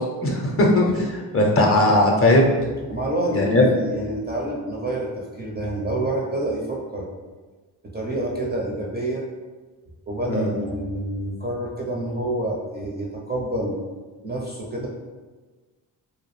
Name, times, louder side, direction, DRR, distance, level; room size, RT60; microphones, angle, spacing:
voice 1, 0.2-0.9 1.3-2.5 3.3-3.6 10.3-10.5, left 1 dB, 30° left, -1 dB, 0.5 m, -18 dB
voice 2, 2.9-7.1 7.9-9.2 10.1-13.8 14.2-14.9, right 1 dB, 20° right, -3 dB, 0.5 m, -28 dB
2.2 x 2.0 x 3.0 m, 1.3 s
supercardioid pair, 50°, 49 cm